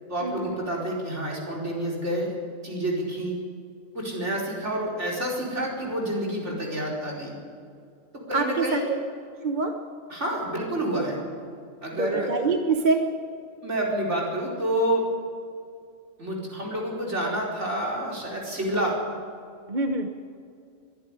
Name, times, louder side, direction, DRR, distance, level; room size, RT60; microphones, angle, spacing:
voice 1, 0.1-2.3 2.6-3.4 3.9-7.4 8.3-8.9 10.1-11.2 11.8-12.3 13.6-15.1 16.2-19.0, right 1 dB, 60° right, -3 dB, 5.1 m, -28 dB
voice 2, 8.3-9.0 9.4-9.7 12.0-13.0 19.7-20.1, right 3 dB, 35° right, 5 dB, 1.1 m, -25 dB
23.0 x 11.5 x 10.0 m, 2.4 s
omnidirectional pair, 1.4 m